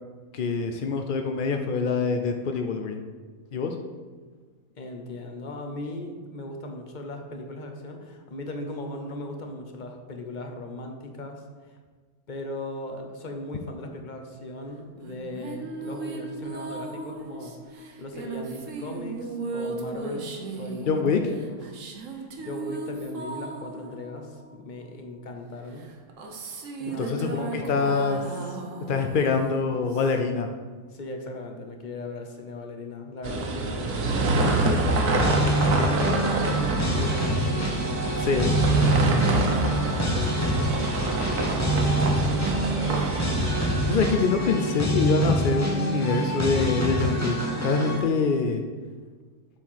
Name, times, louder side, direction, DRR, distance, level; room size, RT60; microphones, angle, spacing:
voice 1, 0.3-3.0 3.5-3.8 20.9-21.2 27.0-28.2 28.9-30.5 38.2-38.5 43.9-48.6, left 5 dB, 70° left, 5 dB, 0.4 m, -25 dB
voice 2, 4.8-11.4 12.3-17.5 18.0-21.6 22.1-25.9 26.8-27.9 30.9-33.9 34.1-35.1 35.4-37.9 38.8-43.2, left 1 dB, 40° left, 4 dB, 0.9 m, -38 dB
sound 1, 15.0-24.9 25.8-30.4, right 3 dB, 60° right, 1.2 m, -37 dB
sound 2, 33.2-44.2, right 2 dB, 80° right, 1.5 m, -26 dB
sound 3, 35.2-48.0, right 1 dB, 10° left, 1.0 m, -26 dB
7.3 x 4.6 x 5.7 m, 1.5 s
omnidirectional pair, 1.6 m